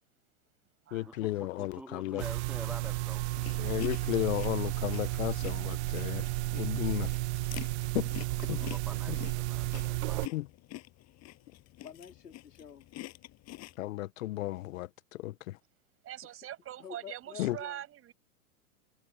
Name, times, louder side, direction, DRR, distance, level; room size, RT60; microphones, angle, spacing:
voice 1, 0.9-2.2 3.6-6.2 6.5-7.1 7.9-8.1 9.1-9.2 10.3-10.5 13.8-15.6 17.4-17.6, left 16 dB, 60° left, 1.6 m, -34 dB
voice 2, 1.6-3.2 8.6-10.3, right 1 dB, 5° right, 0.8 m, -47 dB
sound 1, 2.2-10.3, right 21 dB, 45° right, 0.8 m, -33 dB
sound 2, 2.8-13.8, left 16 dB, 35° left, 7.7 m, -48 dB
voice 3, 11.8-12.9 16.2-16.4 16.8-17.8, left 7 dB, 90° left, 3.9 m, -48 dB
voice 4, 16.0-18.1, right 12 dB, 30° right, 7.1 m, -43 dB
hypercardioid pair, 120°, 46 cm